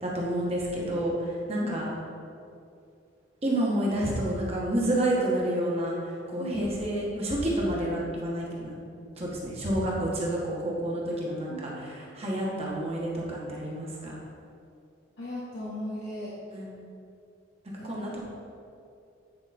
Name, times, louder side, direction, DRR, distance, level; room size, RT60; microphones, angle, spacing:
voice 1, 0.0-1.9 3.4-5.9 6.3-8.7 9.2-11.7 12.2-14.1 16.5-16.7 17.8-18.2, right 1 dB, 30° right, -4 dB, 1.4 m, -29 dB
voice 2, 6.4-6.7 11.5-11.8 15.2-16.3 17.8-18.2, left 1 dB, 60° left, -9 dB, 1.4 m, -37 dB
9.0 x 4.8 x 4.3 m, 2.5 s
head